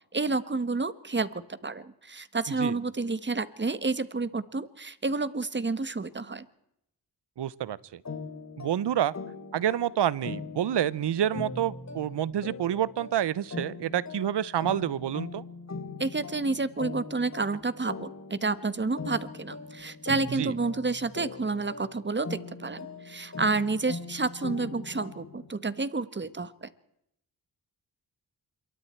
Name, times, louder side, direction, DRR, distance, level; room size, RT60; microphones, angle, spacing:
voice 1, 0.1-6.4 16.0-26.7, right 3 dB, 25° right, 14 dB, 1.4 m, -30 dB
voice 2, 7.4-8.0 8.6-9.1 9.5-15.4 20.4-20.5, right 10 dB, 90° right, 21 dB, 0.8 m, -28 dB
sound 1, 8.0-25.5, left 4 dB, 40° left, 3.5 m, -41 dB
26.5 x 23.5 x 4.5 m, 0.78 s
cardioid pair, 60°, 40 cm